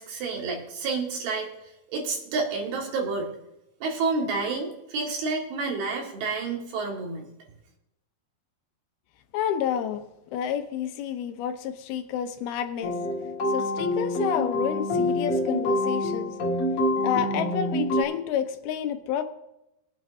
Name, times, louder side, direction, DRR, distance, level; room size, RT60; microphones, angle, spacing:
voice 1, 0.0-1.5 1.9-3.3 3.8-7.3, right 4 dB, 75° right, 0 dB, 4.0 m, -29 dB
voice 2, 9.3-10.0 10.3-12.9 13.5-16.3 17.0-19.2, left 9 dB, 75° left, 8 dB, 2.8 m, -29 dB
sound 1, 12.8-18.0, left 1 dB, 50° left, 2.0 m, -26 dB
22.0 x 8.7 x 2.8 m, 0.90 s
omnidirectional pair, 4.6 m